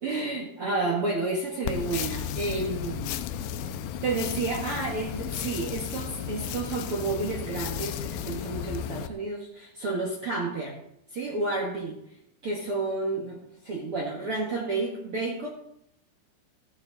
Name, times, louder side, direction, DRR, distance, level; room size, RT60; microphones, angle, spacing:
voice 1, 0.0-3.2 4.0-10.8 11.1-12.2 12.4-15.5, right 3 dB, 65° right, -2 dB, 1.3 m, -31 dB
sound 1, 1.7-9.1, left 9 dB, 90° left, 3.0 m, -34 dB
15.5 x 9.3 x 4.0 m, 0.77 s
omnidirectional pair, 5.2 m